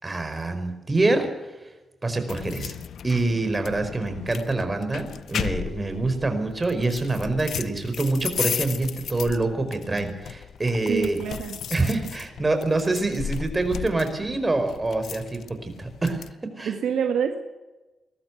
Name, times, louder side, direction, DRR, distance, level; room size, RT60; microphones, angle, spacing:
voice 1, 0.0-1.3 2.0-2.7 3.0-11.2 11.7-16.3 16.6-16.7, right 2 dB, 25° right, 7 dB, 5.0 m, -25 dB
sound 1, 2.3-16.3, left 8 dB, 75° left, 0.8 m, -35 dB
voice 2, 10.9-11.6 16.6-17.4, right 7 dB, 80° right, 6 dB, 1.9 m, -26 dB
20.5 x 13.5 x 9.4 m, 1.1 s
cardioid pair, 60°, 0 cm